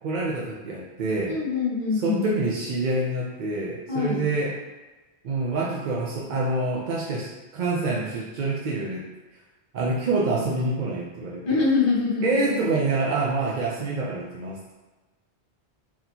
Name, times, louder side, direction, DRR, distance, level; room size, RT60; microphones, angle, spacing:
voice 1, 0.0-1.4 1.9-4.6 5.2-9.0 9.7-11.4 12.2-14.7, right 3 dB, 55° right, -4 dB, 0.6 m, -26 dB
voice 2, 1.3-2.3 3.9-4.3 11.5-12.7, left 4 dB, 50° left, -4 dB, 1.2 m, -24 dB
4.2 x 2.9 x 2.7 m, 1.2 s
omnidirectional pair, 1.2 m